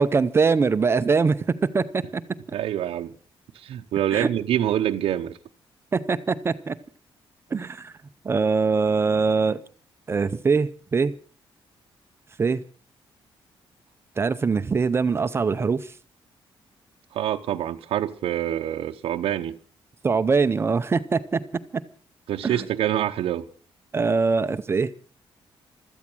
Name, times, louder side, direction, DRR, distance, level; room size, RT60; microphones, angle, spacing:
voice 1, 0.0-2.2 4.1-4.3 5.9-6.8 7.5-7.9 8.2-9.6 10.1-11.1 12.4-12.6 14.2-15.9 20.0-21.4 22.4-22.7 23.9-24.9, right 4 dB, 25° right, 0.6 m, -22 dB
voice 2, 2.5-3.1 3.5-5.4 17.1-19.6 22.3-23.5, right 11 dB, 85° right, 0.8 m, -26 dB
16.0 x 13.5 x 6.1 m
cardioid pair, 155°, 9 cm